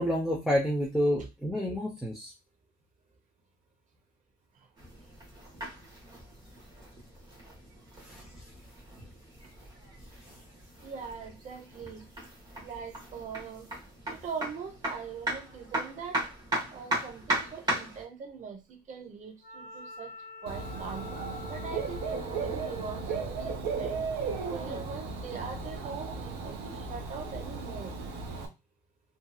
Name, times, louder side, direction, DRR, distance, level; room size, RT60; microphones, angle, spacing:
voice 1, 0.0-2.3 8.0-8.2, equal, ahead, 0.7 m, -29 dB
sound 1, 4.8-18.0, right 1 dB, 25° right, 1.2 m, -37 dB
voice 2, 10.8-12.1 12.6-13.7 14.1-16.2 16.7-20.1 20.4-21.1 21.5-24.1 24.5-28.0, right 6 dB, 45° right, 0.9 m, -42 dB
Wind instrument woodwind instrument, 19.4-23.1, left 3 dB, 70° left, 0.6 m, -46 dB
Dog / Bird, 20.5-28.5, right 4 dB, 90° right, 0.7 m, -35 dB
2.7 x 2.7 x 2.3 m
cardioid pair, 110°, 17 cm